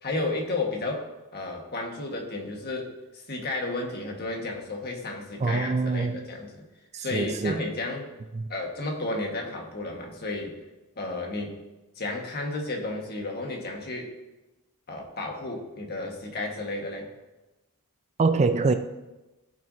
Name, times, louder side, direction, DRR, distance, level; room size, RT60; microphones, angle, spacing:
voice 1, 0.0-6.6 7.0-8.1 8.5-10.6 11.0-11.6 11.9-14.1 14.9-17.1, left 2 dB, 45° left, 1.6 m, -32 dB
voice 2, 5.4-6.2 6.9-7.7 8.3-8.5 18.2-18.7, right 3 dB, 30° right, 0.4 m, -24 dB
15.5 x 6.1 x 2.7 m
head